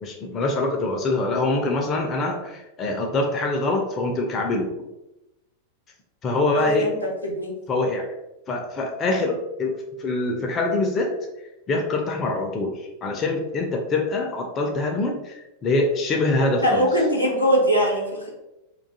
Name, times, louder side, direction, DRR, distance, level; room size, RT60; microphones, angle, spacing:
voice 1, 0.0-4.7 6.2-6.9 7.7-8.1 8.5-11.1 11.7-16.9, left 2 dB, 25° left, 2 dB, 0.4 m, -24 dB
voice 2, 6.5-6.9 7.2-7.5 16.6-18.3, equal, 85° left, -2 dB, 0.6 m, -21 dB
2.3 x 2.3 x 2.6 m, 0.95 s
figure-of-eight pair, 90°, 0 cm